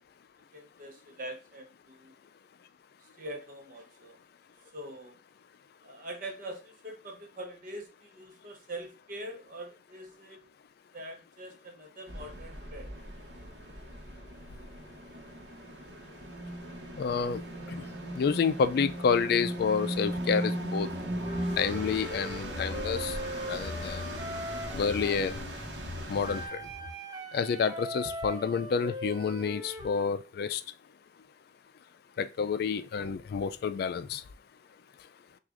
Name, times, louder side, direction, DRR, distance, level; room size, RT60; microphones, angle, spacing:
voice 1, 0.5-2.1 3.0-4.2 4.7-5.2 5.8-10.5 10.9-12.9, right 1 dB, 50° right, 0.8 m, -43 dB
sound 1, 12.1-26.5, right 1 dB, 85° right, 0.9 m, -38 dB
voice 2, 17.0-17.4 17.7-17.8 18.1-20.9 21.6-23.2 23.5-24.1 24.7-25.3 26.1-26.6 27.3-30.6 32.2-34.2, left 6 dB, 60° left, 0.3 m, -29 dB
sound 2, 20.9-26.9, left 2 dB, 20° left, 1.7 m, -42 dB
Wind instrument woodwind instrument, 21.2-25.4 26.2-30.1, equal, 25° right, 0.5 m, -40 dB
6.0 x 2.4 x 2.5 m
head